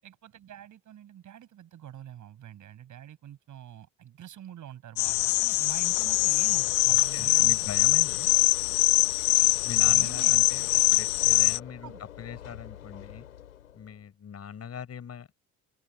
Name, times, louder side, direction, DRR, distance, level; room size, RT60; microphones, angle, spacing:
voice 1, 0.0-7.7 9.9-10.4 11.8-12.0, right 11 dB, 45° right, 6.9 m, -45 dB
sound 1, 5.0-11.6, left 32 dB, 60° left, 1.0 m, -23 dB
Train / Engine / Alarm, 5.8-14.0, left 11 dB, 75° left, 4.3 m, -46 dB
voice 2, 6.9-8.3 9.6-13.2 13.7-15.4, left 8 dB, 35° left, 7.4 m, -41 dB
open air
figure-of-eight pair, 55°, 41 cm